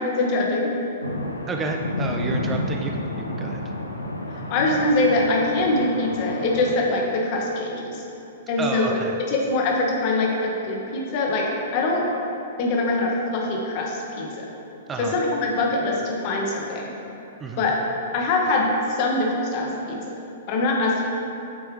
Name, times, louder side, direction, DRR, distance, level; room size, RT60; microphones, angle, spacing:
voice 1, 0.2-0.7 4.3-8.0 8.5-8.9 9.3-12.0 12.6-14.3 15.0-16.8 17.6-17.7 18.1-18.7 19.0-20.0 20.5-21.1, left 2 dB, 40° left, -1 dB, 1.0 m, -23 dB
sound 1, 1.0-6.7, left 1 dB, 80° left, 0.5 m, -30 dB
voice 2, 1.5-3.6 8.6-9.2 14.9-15.2 17.4-17.6, right 4 dB, 15° right, 3 dB, 0.3 m, -30 dB
8.3 x 4.5 x 3.2 m, 2.8 s
figure-of-eight pair, 105°, 0 cm